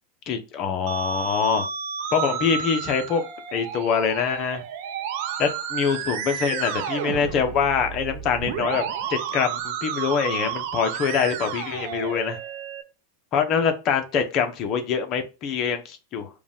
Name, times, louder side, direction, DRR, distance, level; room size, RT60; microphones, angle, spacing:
voice 1, 0.3-1.7 2.1-3.2 3.5-4.6 5.4-8.8 9.1-12.4 13.3-16.3, left 6 dB, 40° left, 6 dB, 0.9 m, -24 dB
Musical instrument, 0.9-12.8, right 8 dB, 65° right, 0.7 m, -31 dB
4.9 x 2.4 x 3.6 m, 0.31 s
hypercardioid pair, 115°, 0 cm